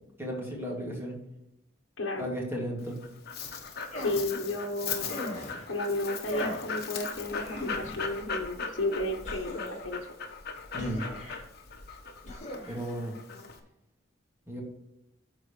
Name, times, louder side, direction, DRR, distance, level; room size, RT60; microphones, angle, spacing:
voice 1, 0.2-1.2 2.2-3.0 10.7-11.0 12.7-13.1 14.5-14.6, equal, 15° right, -2 dB, 2.5 m, -34 dB
voice 2, 2.0-2.3 4.0-5.2 5.7-10.0, left 1 dB, 75° left, 0 dB, 1.1 m, -33 dB
Dog, 2.8-13.6, left 5 dB, 55° left, 1.3 m, -38 dB
sound 1, 3.9-4.3 5.1-5.7 6.3-6.7 7.4-8.1 9.2-9.9 10.8-11.4 12.2-12.7, left 1 dB, 35° left, 2.5 m, -38 dB
12.5 x 4.8 x 3.3 m, 0.84 s
head